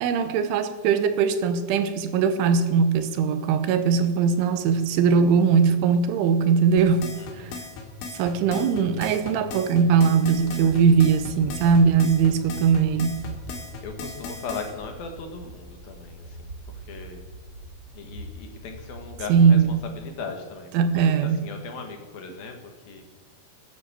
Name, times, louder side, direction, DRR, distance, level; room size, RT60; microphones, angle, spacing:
voice 1, 0.0-7.1 7.4-7.5 8.1-13.2 19.3-19.8 20.7-21.4, right 6 dB, 80° right, 10 dB, 3.5 m, -20 dB
sound 1, 6.8-14.7, left 3 dB, 80° left, 4.7 m, -37 dB
voice 2, 7.2-7.6 10.5-10.8 11.4-11.9 13.8-17.3 17.9-23.1, left 4 dB, 60° left, 4 dB, 2.8 m, -38 dB
sound 2, 10.3-20.1, right 1 dB, 30° right, 1.8 m, -43 dB
19.0 x 10.5 x 7.4 m, 1.3 s
omnidirectional pair, 5.5 m